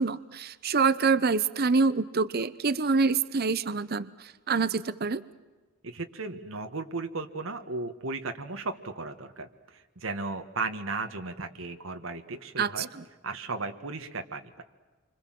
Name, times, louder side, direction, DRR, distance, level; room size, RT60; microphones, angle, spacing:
voice 1, 0.0-5.2 12.6-12.9, right 4 dB, 50° right, 15 dB, 0.8 m, -26 dB
voice 2, 5.8-12.9 13.2-14.6, right 3 dB, 80° right, 6 dB, 1.6 m, -35 dB
28.5 x 25.0 x 7.6 m, 1.3 s
head